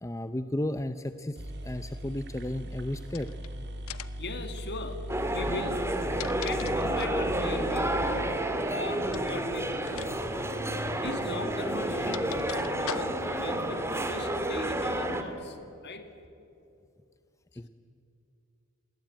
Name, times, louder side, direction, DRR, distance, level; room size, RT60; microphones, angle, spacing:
voice 1, 0.0-3.3 17.6-17.7, left 1 dB, 15° left, 10 dB, 0.7 m, -34 dB
sound 1, 1.1-1.2 1.4-9.2, equal, 50° right, 2.4 m, -39 dB
sound 2, 3.1-3.5 3.9-4.3 5.8-7.3 9.1-9.4 9.9-10.1 10.4-10.5 11.5-13.4, left 9 dB, 70° left, 0.9 m, -41 dB
voice 2, 4.2-6.0 6.4-8.4 8.7-10.1 11.0-15.6 15.8-16.1, left 3 dB, 50° left, 7 dB, 2.6 m, -39 dB
sound 3, 5.1-15.2, right 1 dB, 10° right, 2.1 m, -30 dB
28.5 x 22.5 x 9.0 m, 2.7 s
head